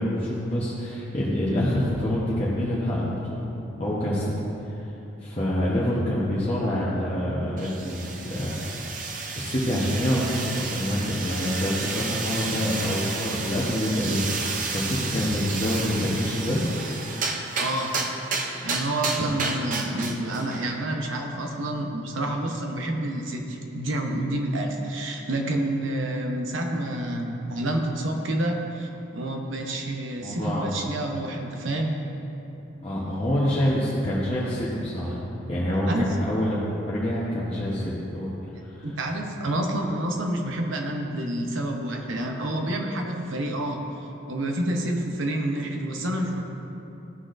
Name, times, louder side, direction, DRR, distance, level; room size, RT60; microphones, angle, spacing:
voice 1, 0.0-3.4 3.8-4.3 4.8-4.9 5.2-8.6 9.3-16.6 30.2-30.8 32.8-35.2 35.5-38.3 38.6-38.9, equal, 30° left, -8 dB, 1.0 m, -26 dB
sound 1, 7.6-20.7, right 4 dB, 40° right, 0.6 m, -31 dB
voice 2, 17.6-18.0 18.6-32.0 35.9-36.1 38.8-46.4, right 1 dB, 80° right, 2 dB, 0.9 m, -28 dB
14.0 x 6.1 x 2.6 m, 2.9 s
head